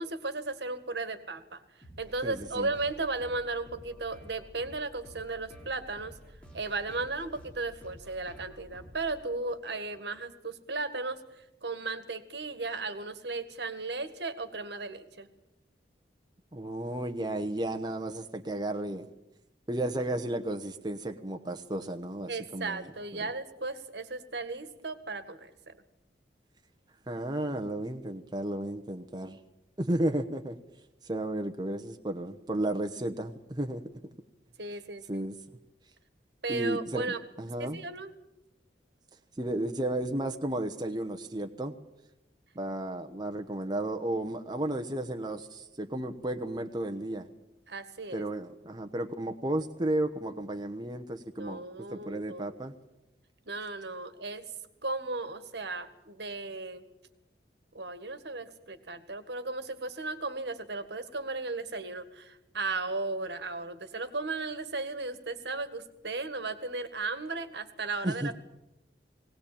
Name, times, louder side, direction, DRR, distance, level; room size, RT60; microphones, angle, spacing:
voice 1, 0.0-1.6 2.0-6.2 6.5-15.3 22.3-25.7 34.6-35.3 36.4-37.2 37.6-38.1 47.7-48.2 51.4-52.5 53.5-54.4 54.8-56.8 57.7-68.3, right 3 dB, 65° right, 11 dB, 1.7 m, -35 dB
sound 1, 1.8-10.2, equal, 5° left, 5.1 m, -52 dB
voice 2, 2.2-2.7 16.5-19.1 19.7-22.8 27.1-29.4 29.8-30.6 31.0-33.8 35.1-35.4 36.5-37.8 39.4-41.7 42.5-47.3 48.1-51.6 51.9-52.7 68.0-68.3, right 1 dB, 25° right, 5 dB, 1.0 m, -33 dB
20.0 x 18.0 x 8.6 m, 0.90 s
head